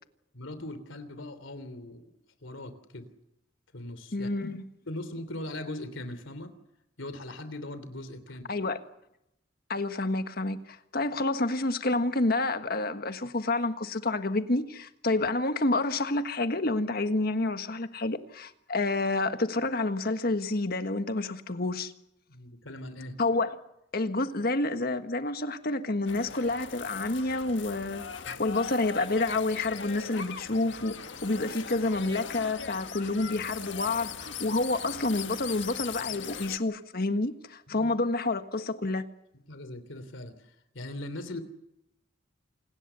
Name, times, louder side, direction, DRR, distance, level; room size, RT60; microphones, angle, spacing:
voice 1, 0.3-2.1 2.4-3.1 3.7-4.3 4.9-6.5 7.0-8.4 22.3-23.2 28.3-28.4 37.7-37.9 39.5-40.3 40.7-41.4, left 1 dB, 85° left, 3.1 m, -40 dB
voice 2, 4.1-4.6 8.5-8.8 9.7-21.9 23.2-23.6 23.9-39.0, left 2 dB, 50° left, 1.5 m, -29 dB
sound 1, 26.1-36.6, left 6 dB, 70° left, 1.6 m, -40 dB
28.0 x 19.5 x 6.9 m
head